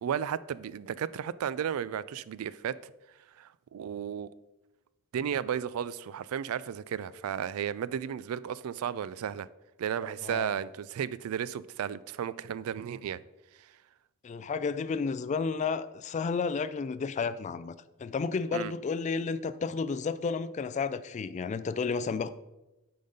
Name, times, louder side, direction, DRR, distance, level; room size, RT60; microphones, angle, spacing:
voice 1, 0.0-2.9 3.4-4.3 5.1-9.5 9.8-13.2 18.5-18.7, right 8 dB, 80° right, 0.3 m, -34 dB
voice 2, 10.2-10.5 14.2-17.7 18.0-22.3, left 5 dB, 35° left, 0.3 m, -32 dB
8.5 x 4.0 x 5.3 m
head